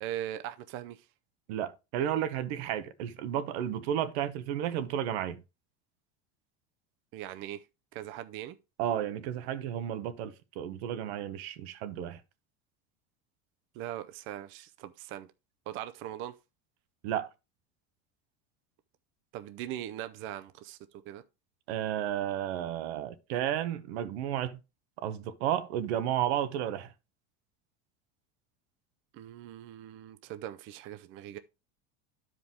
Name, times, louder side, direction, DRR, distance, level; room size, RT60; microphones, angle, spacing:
voice 1, 0.0-1.0 7.1-7.6 7.9-8.6 13.7-15.3 15.7-16.4 19.3-20.8 21.0-21.2 29.1-31.4, right 12 dB, 40° right, 0.5 m, -40 dB
voice 2, 1.5-5.4 8.8-12.2 17.0-17.3 21.7-24.6 25.0-26.9, right 10 dB, 85° right, 1.1 m, -32 dB
11.0 x 5.0 x 3.6 m
cardioid pair, 160°, 32 cm